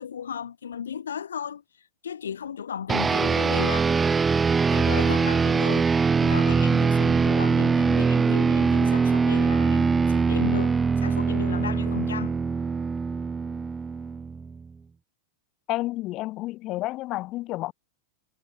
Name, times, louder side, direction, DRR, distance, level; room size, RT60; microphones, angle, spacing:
voice 1, 0.0-1.6 2.0-3.9 4.7-5.9 6.2-12.4, left 8 dB, 65° left, 6.4 m, -34 dB
sound 1, 2.9-14.6, right 5 dB, 15° right, 0.7 m, -22 dB
voice 2, 15.7-17.7, left 17 dB, 35° left, 3.8 m, -30 dB
figure-of-eight pair, 90°, 0 cm